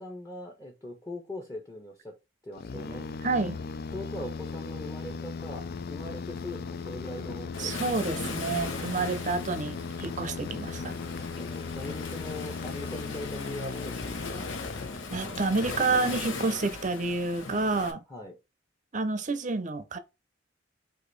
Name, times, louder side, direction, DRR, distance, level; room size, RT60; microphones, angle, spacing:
voice 1, 0.0-2.1 2.4-3.1 3.9-7.8 11.3-14.5 18.1-18.3, left 1 dB, 20° left, 0.9 m, -41 dB
sound 1, 2.6-15.4, left 5 dB, 55° left, 0.4 m, -37 dB
voice 2, 3.2-3.6 7.6-11.0 15.1-18.0 18.9-20.0, right 3 dB, 40° right, 0.6 m, -29 dB
Waves surf, 7.5-17.9, left 3 dB, 90° left, 1.1 m, -38 dB
5.0 x 2.6 x 3.9 m
head